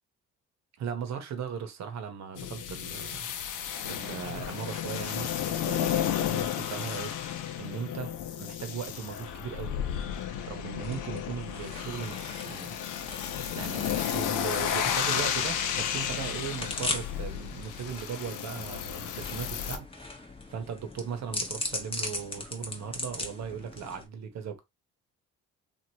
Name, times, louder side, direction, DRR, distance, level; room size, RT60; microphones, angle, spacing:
voice 1, 0.8-3.3 3.8-9.8 10.5-12.7 13.5-20.1 20.5-24.6, right 7 dB, 65° right, 0.9 m, -38 dB
sound 1, 2.3-19.8, left 9 dB, 85° left, 0.6 m, -33 dB
sound 2, 10.8-24.1, left 2 dB, 20° left, 0.8 m, -40 dB
3.0 x 2.5 x 2.7 m
cardioid pair, 90°, 30 cm